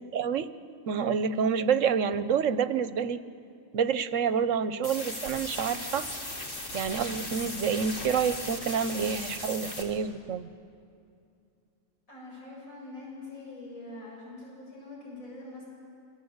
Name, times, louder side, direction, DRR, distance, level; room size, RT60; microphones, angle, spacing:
voice 1, 0.1-0.5 0.9-3.2 3.7-6.1 6.7-10.5, right 7 dB, 70° right, 13 dB, 1.2 m, -28 dB
sound 1, 4.8-9.8, left 1 dB, 65° left, 4.2 m, -37 dB
voice 2, 12.1-15.7, left 2 dB, 90° left, -3 dB, 7.7 m, -44 dB
29.0 x 24.0 x 8.0 m, 2.4 s
omnidirectional pair, 1.4 m